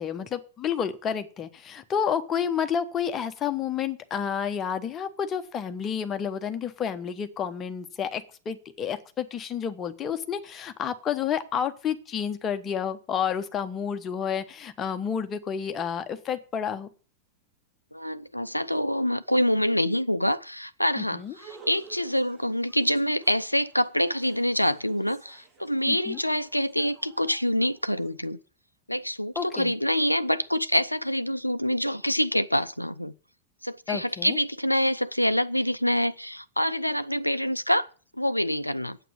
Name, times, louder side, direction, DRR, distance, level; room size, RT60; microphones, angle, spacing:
voice 1, 0.0-16.9 21.0-21.3 25.9-26.2 29.4-29.7 33.9-34.4, left 8 dB, 25° left, 1.2 m, -30 dB
voice 2, 17.9-28.4 28.9-33.1 33.6-37.9 38.2-39.0, equal, 90° left, 0.5 m, -26 dB
sound 1, 21.2-28.1, right 4 dB, 25° right, 2.6 m, -53 dB
9.0 x 8.4 x 8.1 m
figure-of-eight pair, 90°, 0 cm